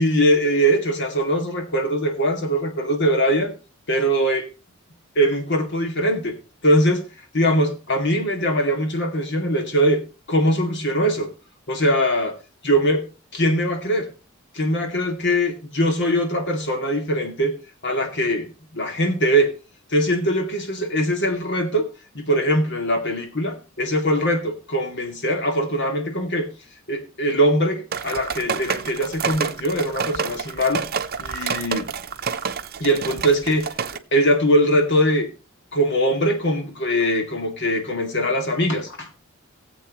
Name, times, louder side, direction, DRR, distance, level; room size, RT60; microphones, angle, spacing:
voice 1, 0.0-3.5 3.9-4.5 5.2-6.4 6.6-7.0 7.3-10.0 10.3-11.3 11.7-12.4 12.6-13.0 13.3-14.1 14.5-17.5 17.8-19.5 19.9-21.9 22.1-26.5 26.9-30.8 31.2-31.9 32.8-33.7 34.1-35.3 35.7-39.1, equal, 60° left, 5 dB, 2.3 m, -21 dB
sound 1, 27.9-34.0, right 6 dB, 45° right, 0.7 m, -28 dB
18.0 x 7.7 x 3.0 m, 0.31 s
head